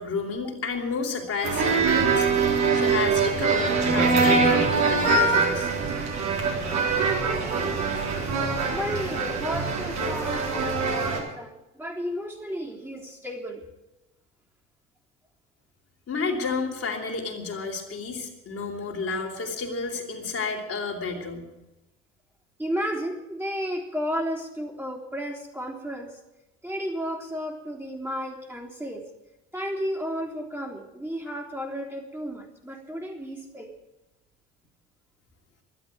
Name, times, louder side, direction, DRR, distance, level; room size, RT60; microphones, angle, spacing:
voice 1, 0.0-2.3 2.7-5.7 16.1-21.4, left 4 dB, 40° left, 0 dB, 3.7 m, -31 dB
sound 1, 1.4-11.2, right 4 dB, 50° right, 3.8 m, -23 dB
voice 2, 8.7-13.6 22.6-26.2 26.6-29.0 29.5-33.7, equal, 5° right, -2 dB, 3.4 m, -33 dB
12.0 x 11.5 x 9.3 m, 0.98 s
figure-of-eight pair, 55°, 35 cm